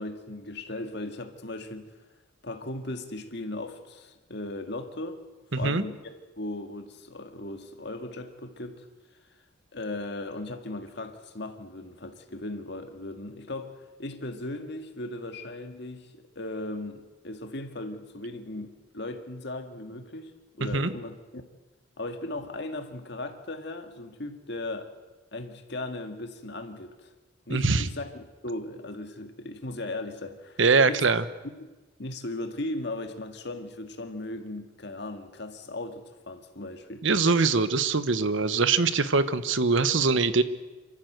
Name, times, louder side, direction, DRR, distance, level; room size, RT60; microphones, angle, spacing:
voice 1, 0.0-1.9 2.4-5.2 5.6-8.9 9.7-20.3 20.6-21.4 22.0-24.9 25.3-27.1 27.5-30.6 30.8-31.0 31.6-31.7 32.0-37.1, left 2 dB, 55° left, 6 dB, 1.9 m, -37 dB
voice 2, 5.5-5.8 20.7-20.9 27.5-27.9 30.6-31.2 37.0-40.4, right 4 dB, 65° right, 13 dB, 1.0 m, -23 dB
26.0 x 13.5 x 7.9 m, 1.2 s
head